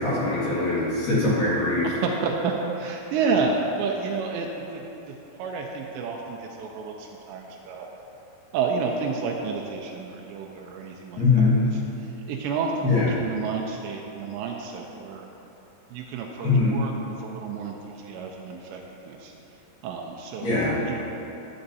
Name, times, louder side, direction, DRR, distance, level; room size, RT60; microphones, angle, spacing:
voice 1, 0.0-1.9 11.2-11.5 12.8-13.1 16.4-16.8 20.4-20.8, left 3 dB, 55° left, -10 dB, 3.0 m, -22 dB
voice 2, 1.8-4.8 5.4-7.9 8.5-15.3 15.9-16.9 17.2-19.3 19.8-20.6 20.8-21.0, right 5 dB, 80° right, 0 dB, 2.7 m, -30 dB
11.5 x 8.8 x 2.7 m, 2.9 s
omnidirectional pair, 5.3 m